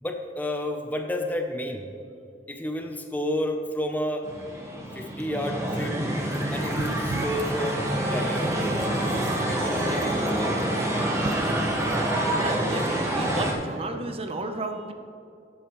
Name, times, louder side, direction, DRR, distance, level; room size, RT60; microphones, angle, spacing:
voice 1, 0.0-1.9 2.5-4.3 4.9-6.0 6.5-8.5 9.5-10.8, left 1 dB, 10° left, 4 dB, 0.6 m, -31 dB
sound 1, 4.2-13.5, right 1 dB, 15° right, 1.3 m, -27 dB
sound 2, 6.3-12.1, right 3 dB, 70° right, 0.5 m, -40 dB
voice 2, 12.4-14.9, right 2 dB, 35° right, 6 dB, 0.6 m, -32 dB
12.0 x 8.7 x 3.0 m, 2.5 s
head